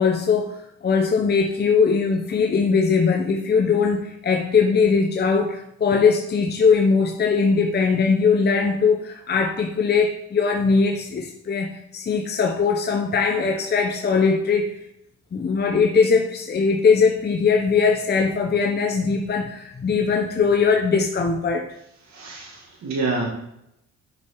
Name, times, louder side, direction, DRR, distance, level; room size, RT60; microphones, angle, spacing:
voice 1, 0.0-14.7 15.3-21.7, left 5 dB, 35° left, 2 dB, 0.8 m, -20 dB
voice 2, 22.1-23.3, right 3 dB, 65° right, -2 dB, 2.1 m, -27 dB
6.7 x 4.8 x 4.5 m, 0.79 s
cardioid pair, 90°, 30 cm